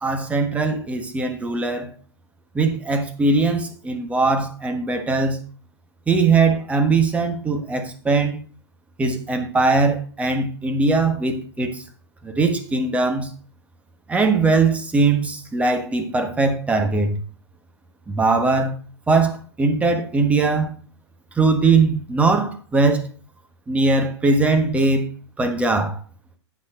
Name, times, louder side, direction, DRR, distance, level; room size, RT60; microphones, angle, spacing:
voice 1, 0.0-1.9 2.5-5.4 6.1-8.4 9.0-11.8 12.2-13.3 14.1-17.2 18.1-18.7 19.1-20.7 21.3-23.1 23.7-25.1 25.4-26.0, right 3 dB, 10° right, 1.4 m, -20 dB
8.4 x 7.7 x 3.9 m
figure-of-eight pair, 105°, 15 cm